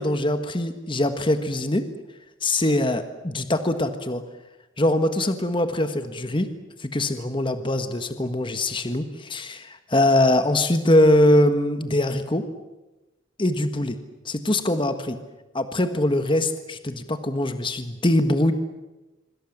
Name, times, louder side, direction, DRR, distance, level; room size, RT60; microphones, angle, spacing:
voice 1, 0.0-1.8 2.4-4.2 4.8-6.5 6.8-12.4 13.4-13.9 14.3-15.2 15.5-18.5, left 1 dB, 25° left, 9 dB, 1.6 m, -22 dB
25.5 x 25.5 x 7.4 m, 1.1 s
head